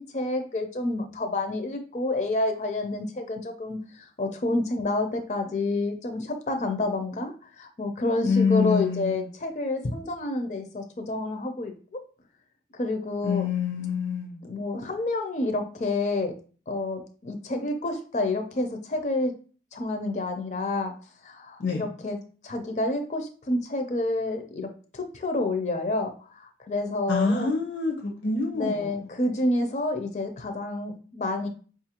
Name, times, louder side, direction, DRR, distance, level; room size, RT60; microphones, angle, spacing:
voice 1, 0.0-11.7 12.7-13.5 14.5-16.3 16.7-19.3 19.7-20.9 21.2-22.2 22.4-24.7 24.9-27.5 28.5-31.5, left 2 dB, 40° left, 5 dB, 0.4 m, -29 dB
voice 2, 8.2-9.2 13.2-14.4 21.6-21.8 27.1-29.0, left 5 dB, 85° left, 1 dB, 0.7 m, -26 dB
5.0 x 2.4 x 2.8 m, 0.40 s
head